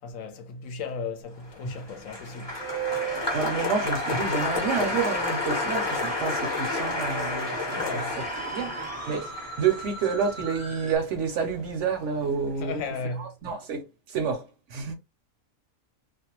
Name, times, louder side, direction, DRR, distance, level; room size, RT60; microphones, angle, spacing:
voice 1, 0.0-2.5 7.8-8.2 12.6-13.3, left 4 dB, 70° left, 1.0 m, -35 dB
Applause, 1.5-11.9 12.1-12.8, left 2 dB, 25° left, 0.7 m, -31 dB
Musical instrument, 2.6-11.0, right 4 dB, 20° right, 0.4 m, -37 dB
voice 2, 3.3-12.8 13.2-13.8 14.1-14.9, right 6 dB, 65° right, 0.8 m, -29 dB
2.4 x 2.2 x 2.8 m
omnidirectional pair, 1.5 m